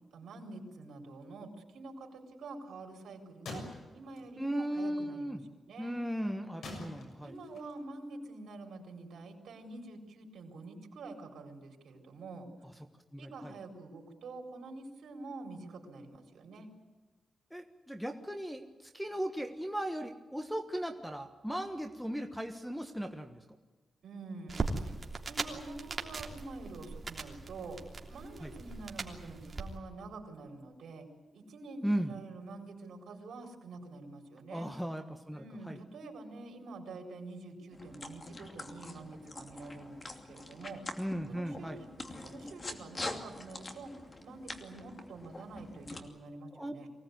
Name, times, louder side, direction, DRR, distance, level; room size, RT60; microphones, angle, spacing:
voice 1, 0.1-3.6 3.9-5.4 5.7-6.0 6.5-6.9 7.2-12.5 13.2-16.7 24.0-24.9 25.3-27.8 28.1-31.1 31.3-34.7 35.3-40.8 41.3-41.9 42.2-46.9, right 3 dB, 80° right, 2 dB, 4.4 m, -47 dB
sound 1, 3.5-4.5 4.8-4.9 6.6-7.8, left 2 dB, 85° left, 6.9 m, -45 dB
voice 2, 4.4-5.4 5.8-7.3 13.1-13.5 17.5-23.4 28.4-28.5 31.8-32.1 34.5-35.8 41.0-41.8 46.5-46.7, equal, ahead, 7 dB, 1.4 m, -37 dB
sound 2, 24.5-29.6, right 3 dB, 35° right, 3.2 m, -39 dB
sound 3, 37.7-46.0, left 2 dB, 30° left, 2.6 m, -45 dB
24.5 x 18.0 x 9.4 m, 1.3 s
wide cardioid pair, 125°, 0 cm